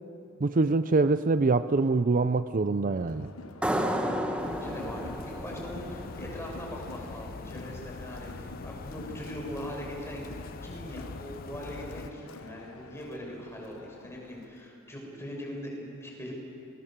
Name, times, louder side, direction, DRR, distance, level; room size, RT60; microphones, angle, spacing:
voice 1, 0.4-3.3, right 3 dB, 40° right, 12 dB, 0.5 m, -24 dB
Crowd, 3.1-14.6, left 3 dB, 90° left, 1.1 m, -48 dB
sound 1, 3.6-6.9, equal, 5° right, 1.5 m, -32 dB
sound 2, 4.4-12.1, left 3 dB, 45° left, 0.6 m, -43 dB
voice 2, 4.4-16.3, equal, 15° left, -1 dB, 6.4 m, -41 dB
29.0 x 21.5 x 7.5 m, 2.6 s
head